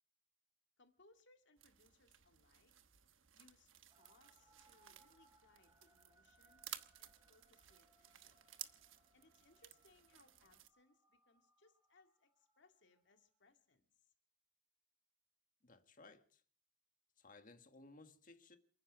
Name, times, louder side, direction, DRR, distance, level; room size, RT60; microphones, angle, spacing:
voice 1, 0.8-2.7 3.3-6.6 7.0-8.5 9.1-14.1, left 2 dB, 65° left, 2.2 m, -71 dB
sound 1, 1.6-10.7, right 12 dB, 90° right, 1.1 m, -57 dB
sound 2, 3.9-13.4, right 1 dB, 15° right, 2.0 m, -74 dB
voice 2, 15.6-16.4 17.2-18.6, left 3 dB, 45° left, 1.7 m, -60 dB
28.0 x 10.0 x 5.1 m
head